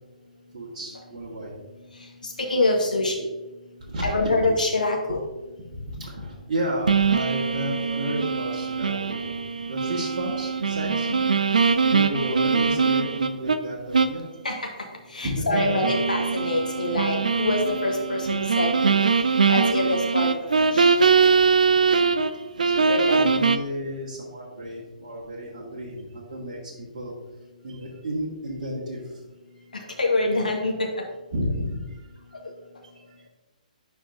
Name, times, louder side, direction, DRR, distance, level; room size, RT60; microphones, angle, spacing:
voice 1, 0.5-1.5 3.9-4.5 5.9-9.3 9.7-11.1 11.9-14.2 15.2-15.8 21.7-22.1 22.6-27.2 27.6-29.1 29.7-29.8 31.3-32.1 32.8-32.9, equal, 45° right, -5 dB, 1.9 m, -32 dB
voice 2, 1.9-3.3 4.0-5.2 11.0-11.2 14.4-14.7 15.1-19.0 19.5-21.0 22.9-23.2 29.7-30.9, left 2 dB, 70° left, 0 dB, 1.7 m, -26 dB
sound 1, 6.9-13.6 13.9-14.2 14.6-14.7 15.5-22.3 22.6-23.6, right 5 dB, 65° right, 0.5 m, -22 dB
11.0 x 4.8 x 2.8 m, 1.2 s
figure-of-eight pair, 125°, 5 cm